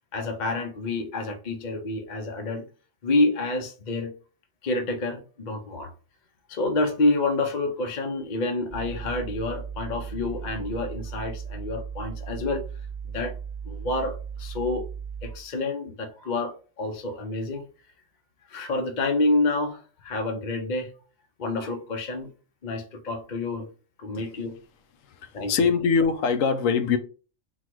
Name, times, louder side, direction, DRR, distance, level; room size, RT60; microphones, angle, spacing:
voice 1, 0.1-2.6 3.0-4.1 4.6-5.9 6.5-12.6 13.1-13.4 13.7-14.8 15.2-17.6 18.5-20.9 21.4-22.3 22.6-23.7 24.0-24.6 25.3-25.5, left 2 dB, 45° left, 0.7 m, -28 dB
sound 1, 8.7-15.5, right 6 dB, 15° right, 0.8 m, -37 dB
voice 2, 25.1-27.0, left 5 dB, 85° left, 1.0 m, -23 dB
3.9 x 2.4 x 4.5 m
omnidirectional pair, 1.3 m